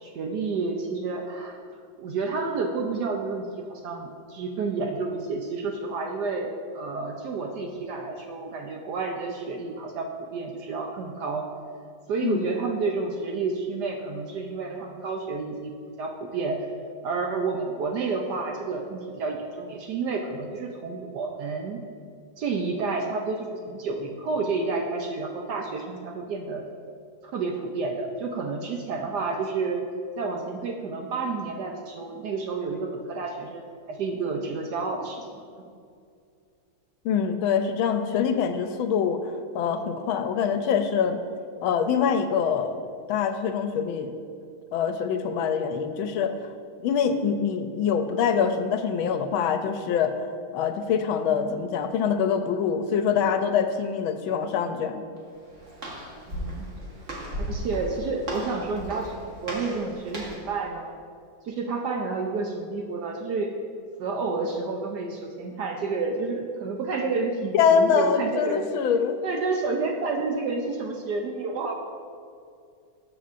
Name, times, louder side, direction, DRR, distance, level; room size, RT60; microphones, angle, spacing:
voice 1, 0.0-1.6 2.0-11.5 12.1-16.7 17.0-21.8 22.4-26.6 27.2-29.9 30.2-33.6 33.9-35.4 51.3-51.5 56.3-56.7 57.3-60.9 61.4-63.5 64.0-68.7 69.2-71.7, right 4 dB, 70° right, 2 dB, 1.1 m, -30 dB
voice 2, 37.0-41.2 41.6-42.7 43.1-44.2 44.7-46.4 46.8-50.3 50.5-55.0 67.5-69.2, left 7 dB, 80° left, 8 dB, 1.4 m, -24 dB
Walk footsteps, 55.2-60.5, equal, 40° right, 1.5 m, -36 dB
12.5 x 7.0 x 2.5 m, 2.3 s
omnidirectional pair, 2.2 m